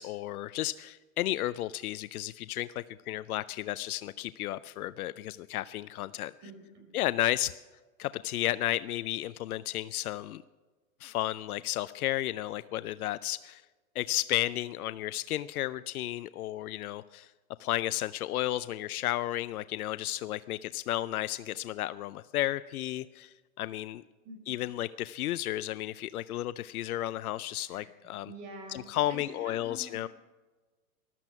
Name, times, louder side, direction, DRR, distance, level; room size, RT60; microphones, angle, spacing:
voice 1, 0.0-6.3 6.9-7.5 8.0-10.4 11.0-13.6 14.0-17.3 17.6-24.0 24.5-28.3 28.7-30.1, left 14 dB, 85° left, 16 dB, 0.6 m, -33 dB
voice 2, 6.4-6.9 24.2-24.6 27.7-27.9 28.3-30.1, right 1 dB, 40° right, 4 dB, 4.4 m, -47 dB
14.5 x 12.5 x 5.8 m, 1.3 s
hypercardioid pair, 125°, 43 cm